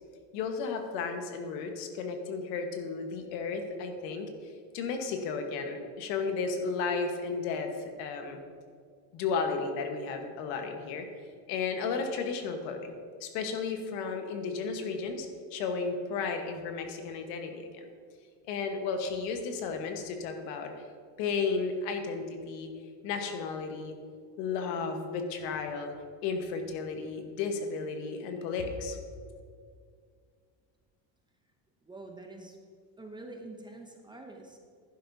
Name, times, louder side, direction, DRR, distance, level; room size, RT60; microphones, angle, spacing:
voice 1, 0.3-8.4 9.1-11.1 11.5-12.9 13.2-17.9 18.5-20.7 21.2-22.7 23.0-23.9 24.4-25.9 26.2-29.0, left 4 dB, 85° left, 5 dB, 1.4 m, -33 dB
voice 2, 31.8-32.6 33.0-34.6, right 2 dB, 10° right, 2 dB, 0.5 m, -46 dB
11.0 x 10.5 x 2.7 m, 2.1 s
cardioid pair, 155°, 47 cm